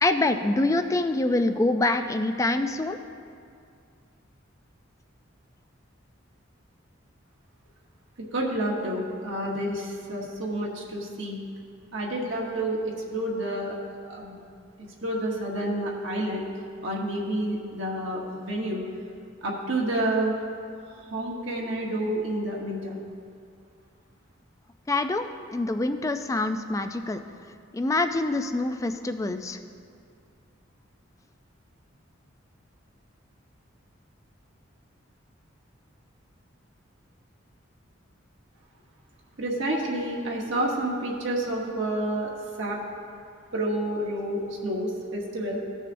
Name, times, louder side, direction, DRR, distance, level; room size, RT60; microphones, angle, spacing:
voice 1, 0.0-3.0 24.9-27.2 27.7-29.6, left 2 dB, 15° left, 8 dB, 0.3 m, -25 dB
voice 2, 8.3-11.4 11.9-13.8 14.1-14.4 15.0-16.4 16.8-18.8 19.4-20.3 21.1-23.0 39.4-42.3 42.6-42.8 43.5-45.6, right 1 dB, 65° right, -3 dB, 1.1 m, -29 dB
16.0 x 6.3 x 2.6 m, 2.3 s
head